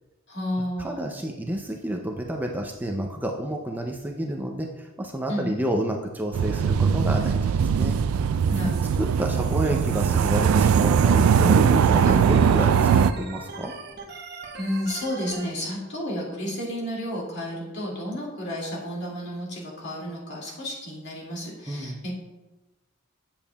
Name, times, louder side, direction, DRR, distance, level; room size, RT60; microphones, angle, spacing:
voice 1, 0.3-1.1 5.3-5.5 8.5-9.1 12.0-12.3 14.6-22.1, equal, 55° left, -4 dB, 2.2 m, -31 dB
voice 2, 0.8-8.0 9.0-13.7 21.7-22.0, right 1 dB, 10° right, 2 dB, 0.4 m, -29 dB
sound 1, 6.3-13.1, right 7 dB, 85° right, 0.3 m, -20 dB
Organ, 11.8-15.5, right 4 dB, 55° right, 0.9 m, -40 dB
8.6 x 7.2 x 2.3 m, 1.1 s
head